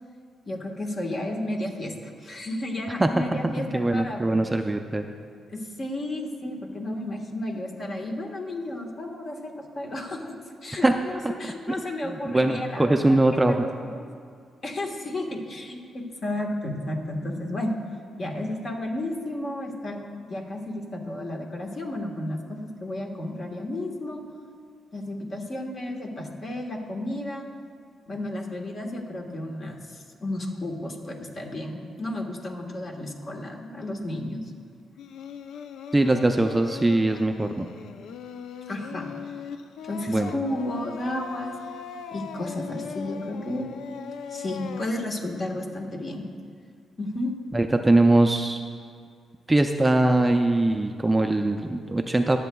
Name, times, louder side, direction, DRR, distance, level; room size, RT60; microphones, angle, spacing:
voice 1, 0.5-4.5 5.5-10.4 10.6-13.2 13.5-14.0 14.6-17.8 18.2-20.0 20.3-24.2 24.9-27.4 28.1-34.5 38.7-39.4 39.8-41.5 42.1-43.7 44.3-46.2 47.0-47.3, left 1 dB, 40° left, 1 dB, 1.4 m, -32 dB
voice 2, 3.0-5.1 10.8-10.9 12.0-13.5 35.9-37.7 40.1-40.3 47.5-48.6 49.5-52.4, right 2 dB, 15° right, 5 dB, 0.4 m, -22 dB
Singing, 35.0-44.9, left 7 dB, 85° left, 0.4 m, -39 dB
22.5 x 7.9 x 2.3 m, 2.2 s
cardioid pair, 110°, 0 cm